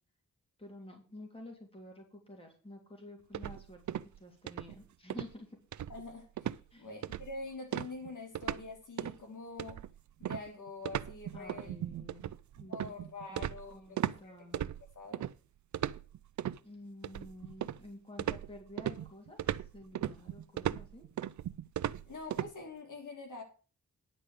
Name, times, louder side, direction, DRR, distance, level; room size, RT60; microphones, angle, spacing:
voice 1, 0.6-5.6 6.7-7.0 11.3-12.3 12.6-12.9 13.3-14.6 16.6-19.4 19.7-21.1, left 1 dB, 20° left, 2.9 m, -51 dB
sound 1, 3.3-4.2 4.5-4.8 5.1-5.3 5.7-6.1 6.4-6.6 7.0-7.4 7.7-8.7 9.0-9.2 9.6-14.2 14.5-15.3 15.7-16.6 17.0-17.9 18.2-22.5, right 11 dB, 70° right, 0.5 m, -37 dB
voice 2, 5.9-9.8 10.2-11.8 12.6-14.6 14.9-15.2 22.0-23.4, left 3 dB, 80° left, 3.2 m, -45 dB
10.0 x 5.1 x 8.2 m
wide cardioid pair, 175°, 30 cm